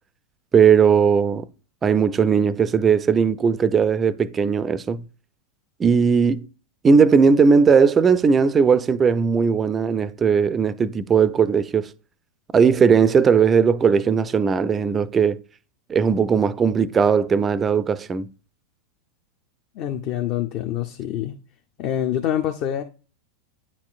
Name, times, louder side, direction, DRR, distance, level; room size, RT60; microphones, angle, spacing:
voice 1, 0.5-1.5 1.8-5.0 5.8-6.5 6.8-11.9 12.5-15.4 15.9-18.3, right 6 dB, 20° right, 0.3 m, -18 dB
voice 2, 19.8-21.3 21.8-22.8, left 11 dB, 40° left, 0.5 m, -25 dB
9.6 x 4.3 x 2.4 m
figure-of-eight pair, 90°, 0 cm